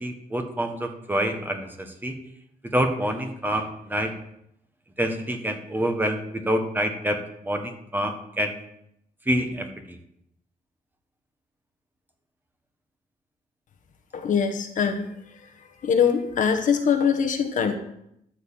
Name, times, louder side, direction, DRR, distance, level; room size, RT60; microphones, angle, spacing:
voice 1, 0.0-2.2 2.6-4.1 5.0-8.6 9.2-10.0, equal, 10° right, 5 dB, 1.2 m, -27 dB
voice 2, 14.1-15.1 15.8-17.8, left 7 dB, 55° left, 6 dB, 1.3 m, -22 dB
12.5 x 4.8 x 7.2 m, 0.76 s
cardioid pair, 155°, 16 cm